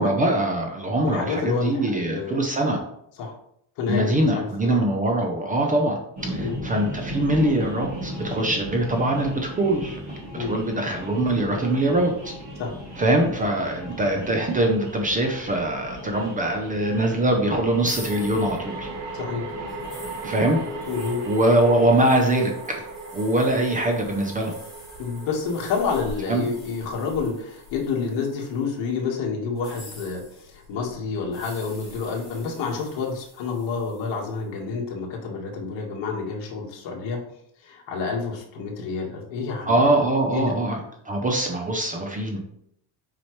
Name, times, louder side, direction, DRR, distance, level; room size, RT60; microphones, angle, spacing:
voice 1, 0.0-2.8 3.9-6.0 6.3-12.1 13.0-18.9 20.2-20.6 21.3-22.8 23.1-24.5 26.3-26.5 39.7-40.8 41.0-42.4, right 1 dB, 15° right, 2 dB, 0.6 m, -23 dB
voice 2, 1.0-2.4 3.2-3.3 3.8-4.8 6.4-6.6 10.4-10.5 12.6-12.7 19.1-19.5 20.9-21.2 25.0-37.2 37.6-39.8 40.3-40.5, left 5 dB, 60° left, -1 dB, 1.8 m, -29 dB
sound 1, 6.2-22.2, equal, 30° right, 2.6 m, -37 dB
sound 2, 14.5-14.6 17.4-28.8, right 4 dB, 75° right, 1.3 m, -38 dB
sound 3, 17.8-28.8 29.5-34.3, left 3 dB, ahead, 2.6 m, -46 dB
7.3 x 4.8 x 3.2 m, 0.72 s
cardioid pair, 180°, 48 cm